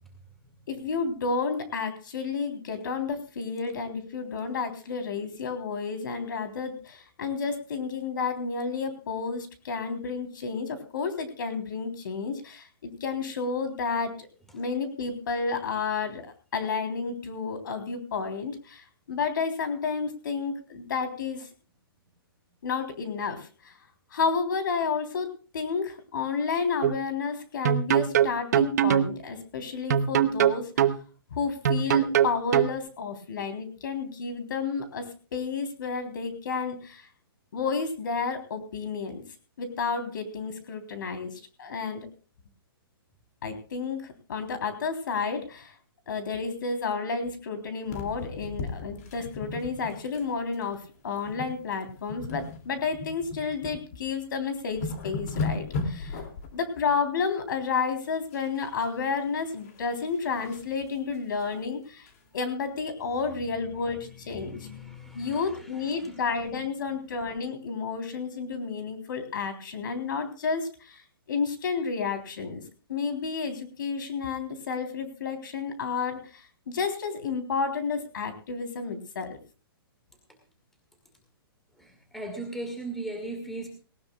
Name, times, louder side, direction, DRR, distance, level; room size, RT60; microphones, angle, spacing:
voice 1, 0.7-14.3 14.5-21.5 22.6-23.7 24.1-30.7 31.3-37.1 37.5-39.2 39.6-41.3 41.6-42.1 43.4-45.7 46.1-56.2 56.5-62.1 62.3-64.6 65.1-71.0 71.3-72.6 72.9-79.4, left 5 dB, 55° left, 8 dB, 3.6 m, -31 dB
sound 1, 26.8-27.0 27.7-29.1 29.9-31.0 31.7-32.7, right 9 dB, 45° right, 0.8 m, -22 dB
sound 2, 47.9-50.3 50.5-50.7 51.2-51.6 51.9-53.8 54.2-54.3 54.6-56.5 58.3-58.9 59.2-60.7 61.1-61.2 61.5-61.6 62.1-62.2, left 4 dB, 40° left, 2.6 m, -36 dB
voice 2, 63.5-66.7 81.8-83.7, right 2 dB, ahead, 3 dB, 2.1 m, -39 dB
19.0 x 18.0 x 2.4 m, 0.36 s
hypercardioid pair, 170°, 13 cm